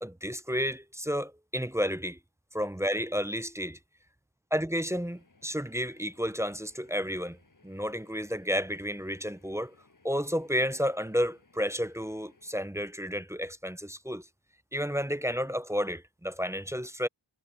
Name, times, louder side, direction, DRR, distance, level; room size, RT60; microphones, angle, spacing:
voice 1, 0.0-2.2 2.5-3.8 4.5-7.4 7.6-9.7 10.0-14.3 14.7-17.1, equal, 5° right, 0.5 m, -31 dB
sound 1, 5.1-12.6, left 3 dB, 40° left, 6.6 m, -64 dB
wide cardioid pair, 95°, 49 cm